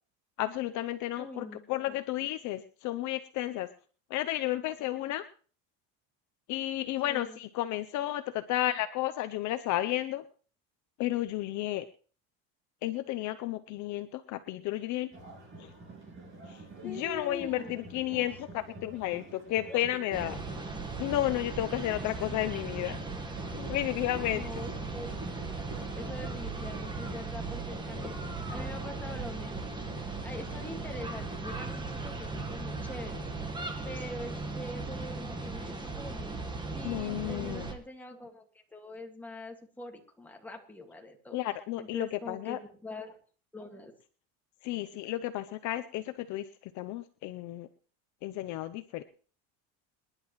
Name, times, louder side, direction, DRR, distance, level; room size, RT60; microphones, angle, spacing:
voice 1, 0.4-3.7 4.1-5.2 6.5-10.2 11.0-11.9 12.8-15.1 15.6-15.7 16.5-20.4 21.0-23.0 23.5-24.5 36.8-37.7 41.3-42.6 44.6-46.4 46.8-47.7 48.2-49.0, left 14 dB, 50° left, 10 dB, 0.7 m, -32 dB
voice 2, 1.2-2.0 7.0-7.4 16.8-17.7 18.1-18.3 19.7-19.8 22.3-22.4 24.3-25.1 25.5-29.7 30.2-33.3 33.8-36.4 36.7-38.4 38.7-41.4 41.8-43.2 43.5-43.9, left 2 dB, 5° left, 1 dB, 1.9 m, -44 dB
sound 1, 15.1-32.9, right 1 dB, 30° right, 6.9 m, -47 dB
sound 2, 20.1-37.7, right 3 dB, 10° right, 1.4 m, -38 dB
26.5 x 10.5 x 3.1 m, 0.41 s
cardioid pair, 150°, 39 cm